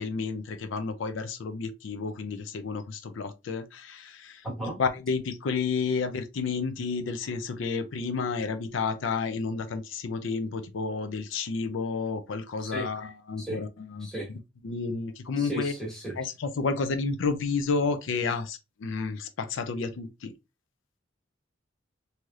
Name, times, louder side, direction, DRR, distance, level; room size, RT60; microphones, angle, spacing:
voice 1, 0.0-4.5 4.8-14.4 14.6-15.7 16.2-20.3, left 4 dB, 90° left, 0.4 m, -31 dB
voice 2, 4.4-4.8 12.6-12.9 13.4-13.6 14.0-14.3 15.4-16.1, right 1 dB, 5° left, 1.2 m, -34 dB
3.1 x 2.7 x 2.3 m
head